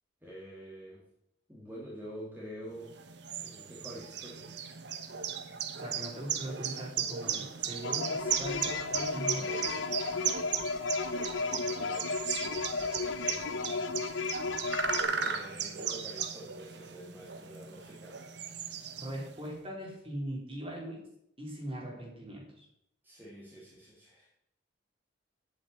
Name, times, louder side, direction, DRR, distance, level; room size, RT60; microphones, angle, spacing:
voice 1, 0.2-1.0 1.5-3.0 3.4-4.7 11.3-13.7 15.1-18.2 21.8-22.0 23.0-24.3, equal, 10° right, -5 dB, 1.9 m, -47 dB
sound 1, 2.9-19.4, right 7 dB, 65° right, 0.9 m, -36 dB
voice 2, 5.7-9.7 19.0-21.0 21.4-22.6, right 1 dB, 30° right, -2 dB, 3.6 m, -40 dB
sound 2, 7.8-15.0, left 4 dB, 80° left, 0.7 m, -34 dB
8.1 x 6.8 x 8.3 m, 0.75 s
head